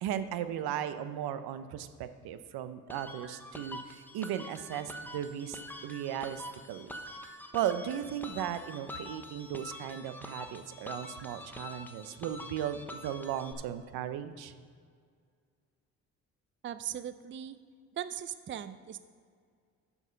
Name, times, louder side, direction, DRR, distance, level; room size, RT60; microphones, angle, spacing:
voice 1, 0.0-7.0 7.5-14.5, right 10 dB, 80° right, 11 dB, 0.7 m, -36 dB
sound 1, 2.9-13.5, left 1 dB, 5° left, 1.0 m, -46 dB
voice 2, 16.6-17.6 18.0-19.0, right 10 dB, 30° right, 13 dB, 0.5 m, -39 dB
7.2 x 6.8 x 5.6 m, 2.1 s
supercardioid pair, 70°, 37 cm